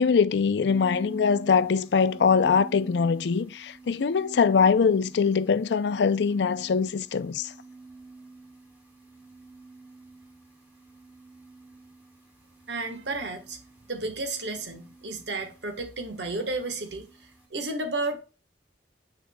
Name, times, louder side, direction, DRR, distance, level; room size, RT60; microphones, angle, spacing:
voice 1, 0.0-7.5, left 5 dB, 75° left, 0.4 m, -23 dB
sound 1, 0.7-17.5, right 3 dB, 10° right, 1.9 m, -48 dB
voice 2, 12.7-13.6 13.9-17.1 17.5-18.2, right 2 dB, 80° right, 1.3 m, -32 dB
8.1 x 6.4 x 2.2 m
head